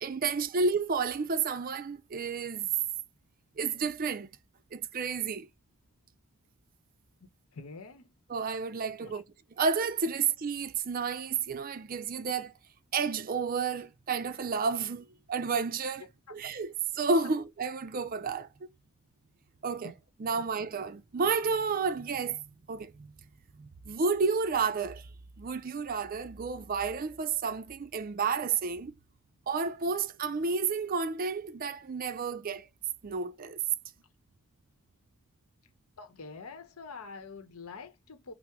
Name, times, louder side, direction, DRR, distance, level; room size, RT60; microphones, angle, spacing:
voice 1, 0.0-2.7 3.6-4.3 4.7-5.5 8.3-9.2 9.6-12.5 12.9-16.0 16.3-18.5 19.6-19.9 20.2-23.1 23.6-25.1 25.4-28.9 29.5-32.7 33.0-33.6, right 5 dB, 40° right, 0.4 m, -31 dB
voice 2, 7.5-8.1 9.0-9.2 17.2-17.3 19.8-19.9 20.3-20.4 36.0-38.3, left 4 dB, 80° left, 0.8 m, -46 dB
5.7 x 2.0 x 3.5 m
head